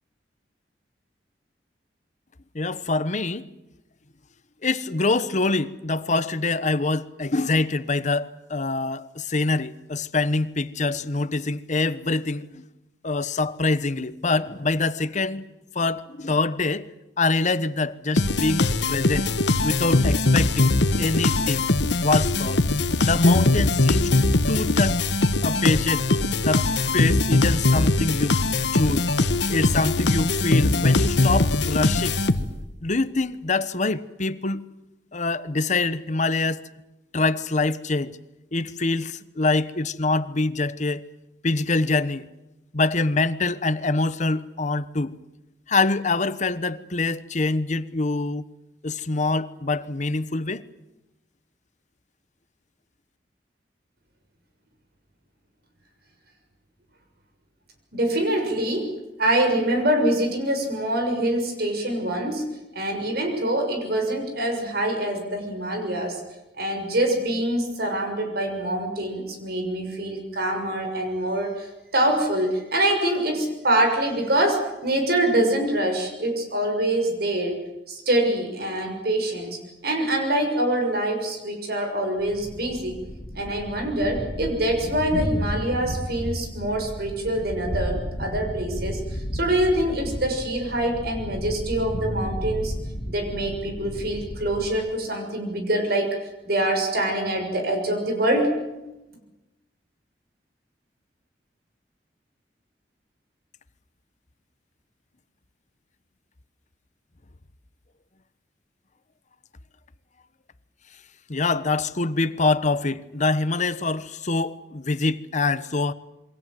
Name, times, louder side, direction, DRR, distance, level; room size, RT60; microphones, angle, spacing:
voice 1, 2.5-3.4 4.6-12.6 13.0-15.5 15.7-16.9 17.2-19.3 19.6-21.6 22.0-22.7 23.0-24.1 24.5-25.0 25.4-26.0 26.4-26.7 26.9-28.4 28.7-29.1 29.5-32.2 32.8-34.7 35.1-36.6 37.1-38.2 38.5-41.0 41.4-42.3 42.7-45.2 45.7-48.4 48.8-50.6 111.3-115.9, left 3 dB, 45° left, 1.1 m, -25 dB
sound 1, 18.2-32.7, left 2 dB, 85° left, 1.3 m, -21 dB
voice 2, 57.9-58.9 59.2-62.4 62.7-66.2 66.5-77.6 77.9-83.0 83.3-92.7 93.1-98.6, right 1 dB, 65° right, 6.7 m, -25 dB
Thunder, 82.2-94.9, equal, 65° left, 2.6 m, -33 dB
28.0 x 23.5 x 7.8 m
head